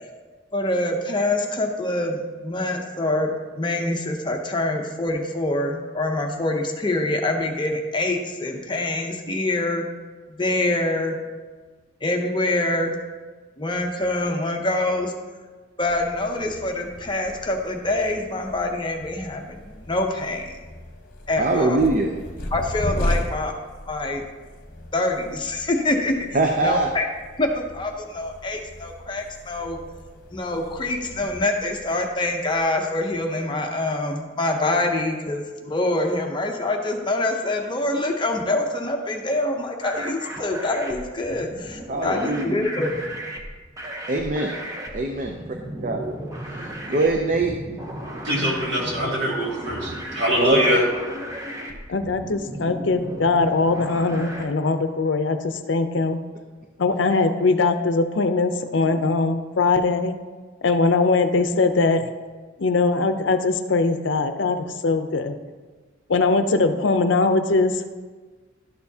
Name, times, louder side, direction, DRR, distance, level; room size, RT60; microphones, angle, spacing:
voice 1, 0.5-9.8 10.3-11.1 12.0-13.0 13.6-15.1 15.8-20.6 21.3-21.8 22.5-23.5 23.9-24.2 24.9-26.3 26.6-27.1 27.4-29.8 30.3-43.0, left 2 dB, 25° left, 3 dB, 0.7 m, -25 dB
sound 1, 15.8-33.2, equal, 45° left, 1.0 m, -36 dB
voice 2, 21.4-22.1 26.3-26.9 41.9-42.6 44.1-44.6 44.9-45.4 45.8-46.1 46.9-47.5 50.4-50.8, right 2 dB, 40° right, 3 dB, 0.5 m, -22 dB
sound 2, 39.8-54.4, equal, 15° right, 0.8 m, -35 dB
voice 3, 48.2-50.8, equal, 70° right, -4 dB, 2.3 m, -23 dB
voice 4, 51.9-56.2 56.8-60.1 60.6-62.1 62.6-65.4 66.1-67.8, left 3 dB, 70° left, 9 dB, 0.6 m, -21 dB
12.0 x 6.8 x 2.8 m, 1.4 s
head